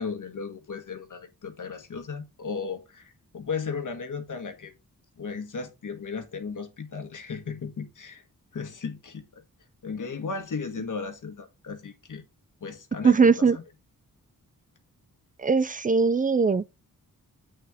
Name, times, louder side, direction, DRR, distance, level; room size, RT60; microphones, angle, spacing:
voice 1, 0.0-4.7 5.2-8.2 8.5-9.4 9.8-12.2 12.6-13.6, left 5 dB, 65° left, 1.7 m, -35 dB
voice 2, 13.0-13.6 15.4-16.8, right 5 dB, 25° right, 0.5 m, -21 dB
7.7 x 6.8 x 3.6 m
wide cardioid pair, 100°, 33 cm